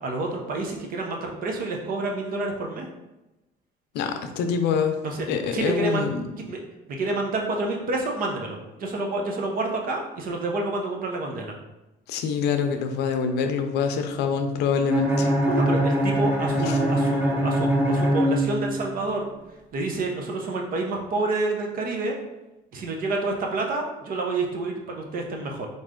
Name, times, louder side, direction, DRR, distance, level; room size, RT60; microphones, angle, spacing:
voice 1, 0.0-2.9 5.0-6.0 6.4-6.6 7.0-11.5 15.5-19.3 19.7-22.1 22.7-25.7, right 2 dB, 55° right, 1 dB, 0.9 m, -28 dB
voice 2, 3.9-5.0 5.3-6.2 12.1-15.3 16.6-16.8, left 6 dB, 85° left, 6 dB, 0.6 m, -25 dB
Bowed string instrument, 14.9-19.0, equal, 10° right, 1.0 m, -23 dB
4.0 x 3.1 x 3.8 m, 0.98 s
cardioid pair, 110°, 17 cm